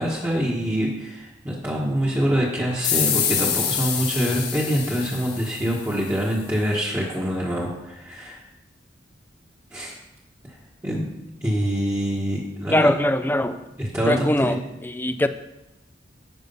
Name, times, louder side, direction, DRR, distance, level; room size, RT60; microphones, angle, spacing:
voice 1, 0.0-8.4 9.7-10.0 10.5-10.6 10.8-11.1 11.4-12.9 13.8-14.6, equal, 15° right, -5 dB, 1.3 m, -25 dB
sound 1, 2.8-6.2, left 8 dB, 60° left, 1.9 m, -26 dB
voice 2, 12.7-13.6 14.1-15.3, left 1 dB, 10° left, 10 dB, 0.4 m, -22 dB
9.3 x 8.2 x 5.5 m, 0.95 s
head